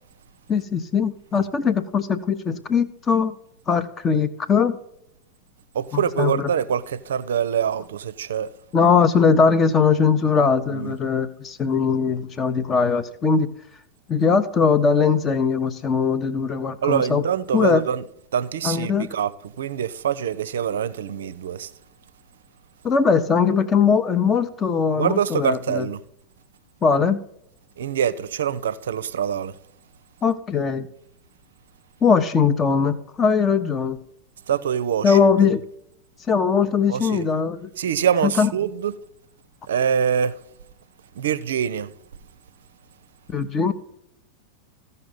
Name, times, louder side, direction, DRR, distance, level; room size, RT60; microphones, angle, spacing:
voice 1, 0.5-3.4 3.7-4.8 5.9-6.5 8.7-13.5 14.1-17.2 17.5-17.8 18.6-19.1 22.8-25.9 26.8-27.2 30.2-30.9 32.0-34.0 35.0-35.6 36.3-37.7 38.2-38.5 43.3-43.7, left 5 dB, 25° left, 0.7 m, -20 dB
voice 2, 5.7-8.5 10.7-11.0 16.8-18.0 18.3-21.7 24.9-26.0 27.8-29.6 34.5-35.2 36.9-37.3 37.8-38.9 39.7-40.3 41.2-41.9, right 8 dB, 60° right, 0.5 m, -24 dB
15.0 x 5.4 x 4.0 m
figure-of-eight pair, 90°, 0 cm